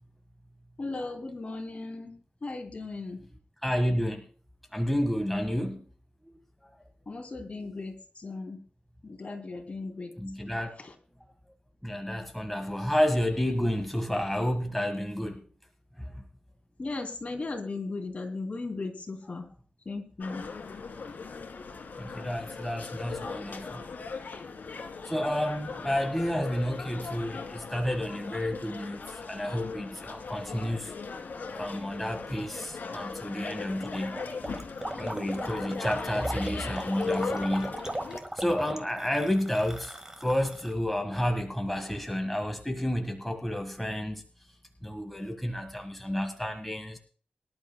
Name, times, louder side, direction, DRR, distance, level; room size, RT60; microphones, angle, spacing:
voice 1, 0.8-2.1 2.4-3.2 7.1-8.6 9.0-10.1 10.8-10.9 16.8-19.5 19.8-20.4, left 3 dB, 45° left, 4 dB, 3.0 m, -36 dB
voice 2, 3.6-4.2 4.7-5.8 6.2-6.4 6.6-6.7 10.2-10.8 11.8-15.4 16.0-16.2 22.0-23.8 25.0-30.9 31.5-34.2 34.9-37.7 38.3-40.0 40.2-44.2 44.8-47.0, equal, 5° left, 4 dB, 1.6 m, -30 dB
sound 1, 20.2-38.2, left 4 dB, 90° left, 1.8 m, -39 dB
Gurgling, 33.8-40.7, right 1 dB, 20° right, 1.7 m, -37 dB
23.5 x 12.0 x 2.3 m, 0.42 s
wide cardioid pair, 100°, 3 cm